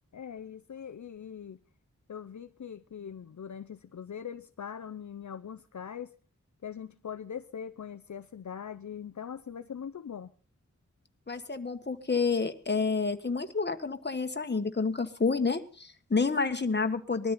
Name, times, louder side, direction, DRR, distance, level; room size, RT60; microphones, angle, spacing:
voice 1, 0.1-1.6 2.1-6.1 6.6-10.3, left 8 dB, 70° left, 0.6 m, -41 dB
voice 2, 11.3-17.3, left 4 dB, 35° left, 1.4 m, -29 dB
20.5 x 13.5 x 4.2 m
wide cardioid pair, 75°, 30 cm